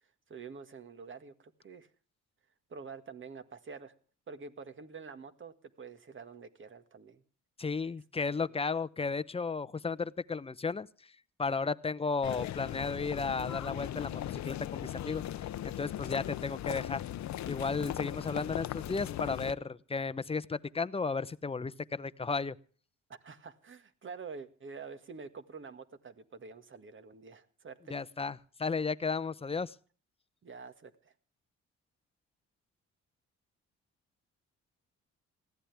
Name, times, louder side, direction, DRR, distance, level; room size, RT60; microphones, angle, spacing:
voice 1, 0.3-1.9 2.7-3.9 4.3-7.2 7.8-7.9 8.3-8.5 23.1-28.0 30.4-31.1, right 5 dB, 40° right, 9 dB, 1.9 m, -47 dB
voice 2, 7.6-10.9 11.4-17.0 17.5-22.5 27.9-29.8, left 4 dB, 20° left, 16 dB, 0.8 m, -34 dB
sound 1, 12.2-19.5, left 12 dB, 65° left, 0.8 m, -38 dB
20.0 x 15.5 x 3.5 m, 0.42 s
cardioid pair, 90°, 30 cm